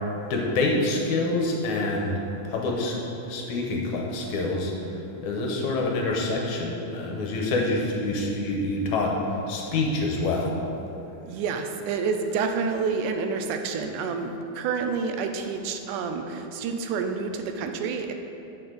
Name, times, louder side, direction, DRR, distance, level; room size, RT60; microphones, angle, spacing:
voice 1, 0.3-2.1 2.4-3.0 3.3-4.7 5.2-9.2 9.5-10.5, left 2 dB, 75° left, -1 dB, 2.3 m, -26 dB
voice 2, 11.2-18.1, right 5 dB, 85° right, 5 dB, 2.1 m, -28 dB
9.1 x 6.9 x 3.9 m, 3.0 s
omnidirectional pair, 3.6 m